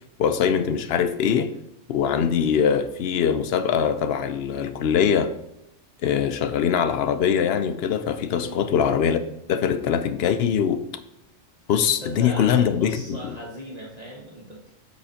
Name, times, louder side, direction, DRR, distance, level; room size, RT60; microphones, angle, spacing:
voice 1, 0.2-1.5 1.9-5.3 6.0-9.2 9.5-10.8 11.7-13.3, left 7 dB, 65° left, 10 dB, 0.7 m, -22 dB
voice 2, 12.0-14.8, equal, 35° right, -3 dB, 1.1 m, -38 dB
8.1 x 6.6 x 2.8 m, 0.80 s
omnidirectional pair, 1.4 m